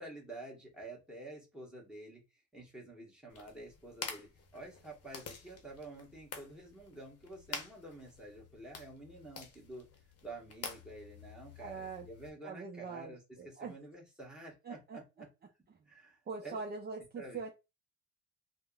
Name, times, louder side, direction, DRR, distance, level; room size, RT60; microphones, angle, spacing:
voice 1, 0.0-2.2 2.5-9.9 10.2-15.3 15.9-16.6 17.2-17.4, right 2 dB, 5° right, -1 dB, 1.4 m, -49 dB
sound 1, 3.3-12.3, left 5 dB, 55° left, 0.8 m, -48 dB
voice 2, 11.6-12.1 12.4-13.7 14.6-15.0 15.7-15.8 16.3-17.5, right 4 dB, 35° right, 1 dB, 0.6 m, -43 dB
3.4 x 2.1 x 2.4 m, 0.26 s
cardioid pair, 90°, 30 cm